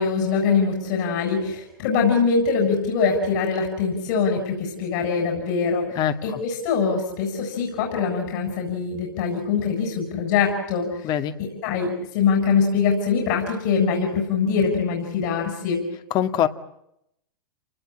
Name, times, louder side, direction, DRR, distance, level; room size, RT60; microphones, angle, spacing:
voice 1, 0.0-11.1 11.4-15.8, left 5 dB, 60° left, 3 dB, 7.6 m, -23 dB
voice 2, 6.0-6.4 11.0-11.3 16.1-16.5, left 10 dB, 40° left, 9 dB, 2.2 m, -23 dB
30.0 x 20.0 x 8.9 m, 0.80 s
hypercardioid pair, 100°, 11 cm